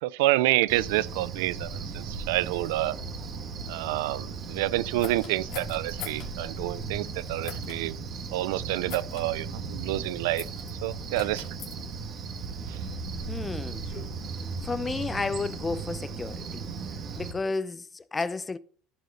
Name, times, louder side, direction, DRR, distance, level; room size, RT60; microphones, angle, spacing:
voice 1, 0.0-2.9 3.7-8.0 8.3-11.5 12.7-12.8, right 17 dB, 90° right, 0.4 m, -28 dB
Cricket, 0.7-17.3, right 4 dB, 45° right, 1.9 m, -37 dB
sound 1, 5.0-6.3 7.4-7.8 8.9-9.3 10.4-10.7 11.1-11.7 12.6-14.1, left 7 dB, 65° left, 2.9 m, -42 dB
voice 2, 13.3-13.9 14.6-16.7 17.1-18.6, left 3 dB, 20° left, 0.6 m, -32 dB
14.5 x 5.1 x 3.9 m
supercardioid pair, 115°, 0 cm